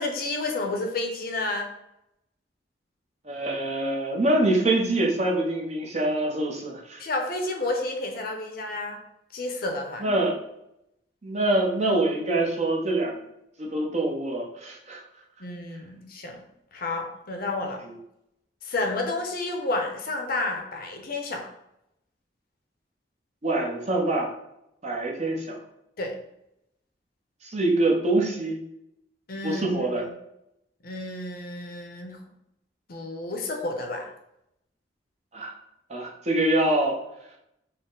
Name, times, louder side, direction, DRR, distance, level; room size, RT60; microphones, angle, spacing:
voice 1, 0.0-1.7 7.0-9.0 9.3-10.1 15.4-16.4 16.7-17.8 18.6-21.5 26.0-26.1 29.3-30.0 30.8-32.2 32.9-34.1, left 2 dB, 55° left, 3 dB, 0.6 m, -30 dB
voice 2, 3.2-7.0 10.0-10.4 11.2-13.2 13.6-15.0 17.8-18.0 23.4-24.3 24.8-25.6 27.4-28.6 29.4-30.0 35.3-35.5 35.9-37.0, right 2 dB, 40° right, -1 dB, 0.7 m, -25 dB
4.2 x 2.0 x 3.8 m, 0.82 s
head